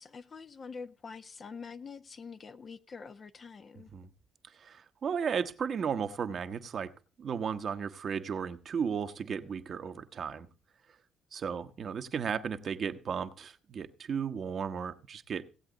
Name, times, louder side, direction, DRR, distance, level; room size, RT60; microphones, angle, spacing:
voice 1, 0.0-3.9, left 5 dB, 45° left, 1.1 m, -45 dB
voice 2, 4.6-6.9 7.2-10.5 11.3-15.4, right 7 dB, 55° right, 1.2 m, -34 dB
17.5 x 8.0 x 3.9 m
supercardioid pair, 60°, 0 cm